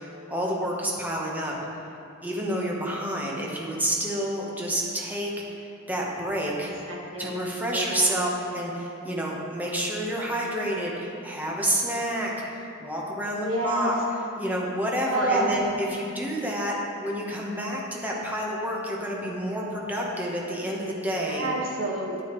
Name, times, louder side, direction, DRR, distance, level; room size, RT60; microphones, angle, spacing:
voice 1, 0.0-1.5 2.2-5.3 5.6-6.7 7.2-13.9 14.4-21.5, equal, 10° right, -3 dB, 1.1 m, -29 dB
voice 2, 6.9-7.4 7.7-8.3 13.3-14.0 15.1-15.5 21.3-22.2, right 2 dB, 75° right, -2 dB, 1.6 m, -29 dB
9.4 x 9.2 x 3.1 m, 2.6 s
head